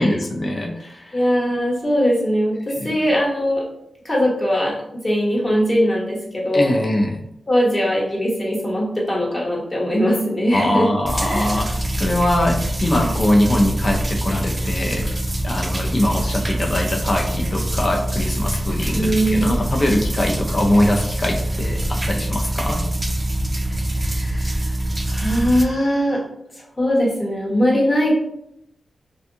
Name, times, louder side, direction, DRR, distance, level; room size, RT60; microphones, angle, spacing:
voice 1, 0.0-1.2 2.8-2.9 6.5-7.2 10.5-15.1 15.4-22.8, left 1 dB, 45° left, 1 dB, 0.5 m, -22 dB
voice 2, 1.1-3.6 4.0-6.8 7.5-10.9 11.2-11.6 18.9-19.5 23.9-24.7 25.1-26.2 26.8-28.1, equal, 30° left, -4 dB, 1.0 m, -20 dB
sound 1, 11.0-25.6, right 1 dB, 25° right, 0.4 m, -24 dB
2.6 x 2.3 x 2.7 m, 0.77 s
cardioid pair, 75°, 0 cm